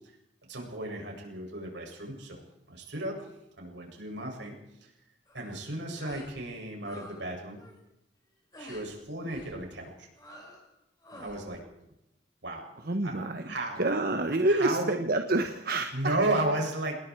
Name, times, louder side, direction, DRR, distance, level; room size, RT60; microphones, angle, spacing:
voice 1, 0.5-2.4 2.7-3.2 3.6-4.5 4.8-4.9 5.3-7.6 8.6-10.1 11.2-11.6 12.4-12.7 13.0-13.1 13.4-13.8 14.5-14.9 15.9-16.9, right 2 dB, 75° right, 1 dB, 7.8 m, -33 dB
sound 1, 5.3-5.6 5.9-6.3 6.6-7.2 7.5-7.8 8.5-8.9 9.3-9.6 10.2-10.7 11.0-11.4, left 1 dB, 20° left, 6.2 m, -49 dB
voice 2, 12.8-13.4 13.8-16.2, right 2 dB, 55° right, 6 dB, 1.4 m, -28 dB
28.0 x 20.5 x 4.8 m, 0.84 s
head